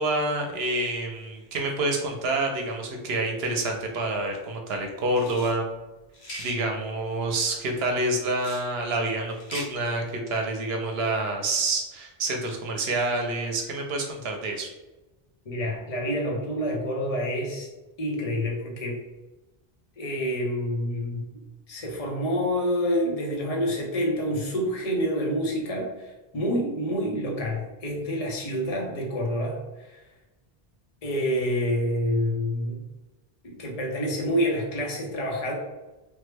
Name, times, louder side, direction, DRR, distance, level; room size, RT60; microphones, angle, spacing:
voice 1, 0.0-5.7 6.4-14.7, right 2 dB, 80° right, 2 dB, 0.8 m, -28 dB
sound 1, 5.1-5.5 6.1-6.5 8.3-8.7 9.3-9.7, left 1 dB, 90° left, 1.1 m, -39 dB
voice 2, 15.5-17.7 18.0-19.0 20.0-21.2 21.7-30.0 31.0-32.8 33.4-35.5, equal, 40° left, -1 dB, 0.7 m, -28 dB
3.4 x 2.1 x 3.2 m, 1.1 s
omnidirectional pair, 1.0 m